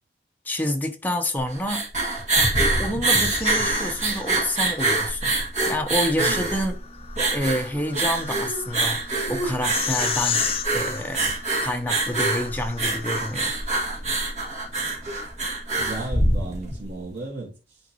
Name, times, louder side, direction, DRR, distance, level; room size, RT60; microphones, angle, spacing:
voice 1, 0.4-1.8 2.8-5.3 5.7-6.7 7.3-9.0 9.3-10.5 10.7-11.2 11.6-13.5, left 1 dB, 10° left, 0.8 m, -28 dB
sound 1, 1.4-16.8, right 2 dB, 40° right, 2.1 m, -25 dB
sound 2, 3.1-5.1 6.6-13.7, left 9 dB, 35° left, 0.5 m, -34 dB
voice 2, 15.7-17.8, right 2 dB, 80° right, 2.0 m, -34 dB
9.0 x 5.1 x 3.0 m
head